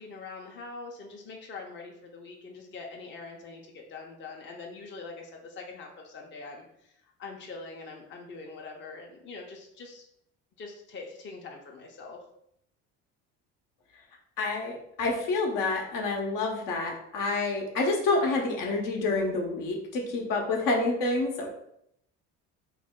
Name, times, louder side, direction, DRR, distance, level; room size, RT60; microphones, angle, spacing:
voice 1, 0.0-10.0 10.6-12.2, left 4 dB, 30° left, 0 dB, 0.7 m, -43 dB
voice 2, 14.4-21.5, left 3 dB, 65° left, 1 dB, 0.8 m, -28 dB
3.1 x 2.1 x 3.6 m, 0.74 s
supercardioid pair, 75°, 36 cm